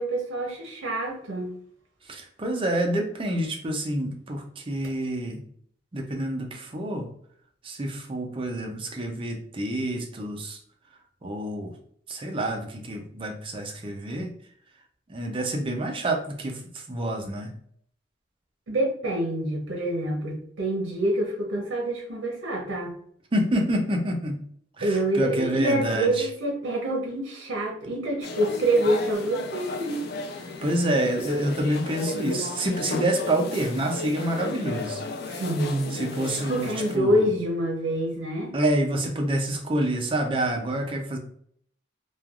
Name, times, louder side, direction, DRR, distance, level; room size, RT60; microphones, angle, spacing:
voice 1, 0.0-1.5 18.7-22.9 24.8-30.1 35.2-36.0 36.5-38.5, right 1 dB, 85° right, 0 dB, 0.6 m, -26 dB
voice 2, 2.0-5.4 5.9-7.1 7.6-10.6 11.2-11.7 12.1-14.3 15.1-17.5 23.3-24.4 24.8-26.3 30.6-35.4 35.9-37.3 38.5-41.2, right 1 dB, 30° right, 2 dB, 0.4 m, -28 dB
sound 1, 28.2-37.0, left 3 dB, 55° left, 0.3 m, -34 dB
3.1 x 2.3 x 2.3 m, 0.64 s
head